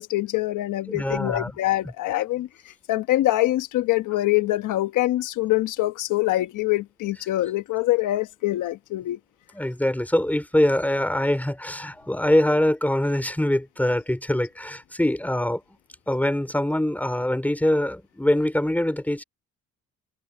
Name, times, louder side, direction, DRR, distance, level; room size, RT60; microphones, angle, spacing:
voice 1, 0.0-2.5 2.9-9.2, left 16 dB, 85° left, 1.1 m, -24 dB
voice 2, 0.9-1.5 1.8-1.9 9.5-15.6 16.1-19.2, left 1 dB, 5° left, 3.6 m, -23 dB
cardioid pair, 90°, 30 cm